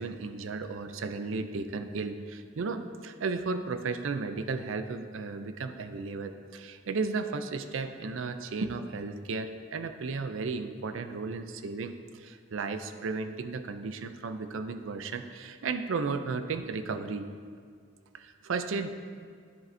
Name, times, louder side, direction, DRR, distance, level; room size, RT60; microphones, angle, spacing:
voice 1, 0.0-17.3 18.1-18.9, right 4 dB, 75° right, 9 dB, 0.5 m, -34 dB
9.8 x 7.4 x 2.7 m, 2.1 s
head